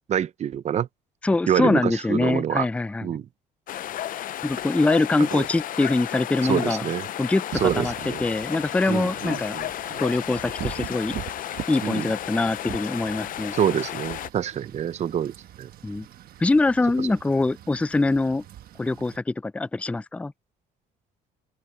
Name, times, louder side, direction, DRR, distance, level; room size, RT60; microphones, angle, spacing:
voice 1, 0.1-0.9 1.5-2.7 3.0-3.3 5.2-5.5 6.4-7.1 7.6-8.2 8.9-10.0 11.8-12.1 13.5-15.3 15.6-15.7, right 9 dB, 40° right, 0.6 m, -26 dB
voice 2, 1.2-3.1 4.4-6.8 7.2-7.9 8.2-9.6 10.0-11.1 11.7-13.5 15.8-16.1 16.4-18.4 18.8-20.3, left 2 dB, 5° left, 0.4 m, -23 dB
sound 1, 3.7-14.3, left 12 dB, 55° left, 0.6 m, -33 dB
Wind / Rain, 7.5-19.2, right 12 dB, 65° right, 1.3 m, -42 dB
open air
cardioid pair, 110°, 17 cm